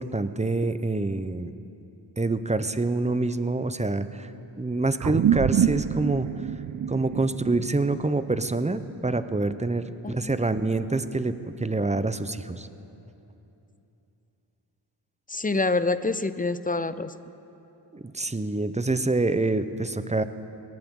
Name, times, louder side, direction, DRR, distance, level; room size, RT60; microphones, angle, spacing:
voice 1, 0.0-1.5 2.2-4.3 4.6-6.3 6.9-11.3 11.6-12.7 17.9-20.2, right 2 dB, 15° right, 12 dB, 0.8 m, -26 dB
sound 1, 5.0-9.8, right 9 dB, 45° right, 0.5 m, -27 dB
voice 2, 15.3-17.1, left 3 dB, 20° left, 13 dB, 0.7 m, -26 dB
21.0 x 17.5 x 3.9 m, 2.9 s
cardioid pair, 40°, 46 cm